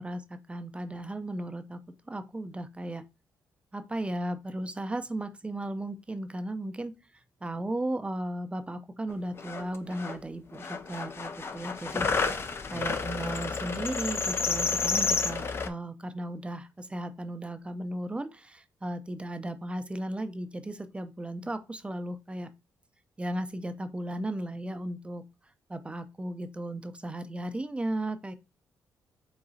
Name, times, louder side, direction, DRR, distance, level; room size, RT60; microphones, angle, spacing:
voice 1, 0.0-1.8 2.1-3.0 3.7-6.9 7.4-12.1 12.7-22.5 23.2-25.2 25.7-28.3, right 1 dB, 15° right, 0.5 m, -35 dB
sound 1, 9.1-9.2 9.4-10.2 10.5-15.7, left 4 dB, 35° left, 0.5 m, -30 dB
4.9 x 3.6 x 2.7 m
cardioid pair, 100°, 7 cm